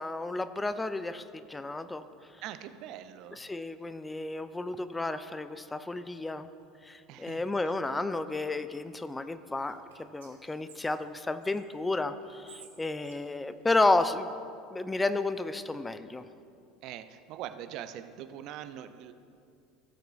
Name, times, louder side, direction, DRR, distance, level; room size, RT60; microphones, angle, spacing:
voice 1, 0.0-2.0 3.4-6.5 6.8-9.8 10.1-14.3 14.7-16.2, left 2 dB, 15° left, 12 dB, 0.4 m, -31 dB
voice 2, 2.4-3.4 7.1-7.7 16.8-19.1, right 11 dB, 55° right, 11 dB, 0.5 m, -43 dB
Whispering, 9.6-11.6 12.2-14.4, right 7 dB, 70° right, 1.5 m, -57 dB
17.5 x 7.8 x 2.4 m, 2.5 s
figure-of-eight pair, 70°, 0 cm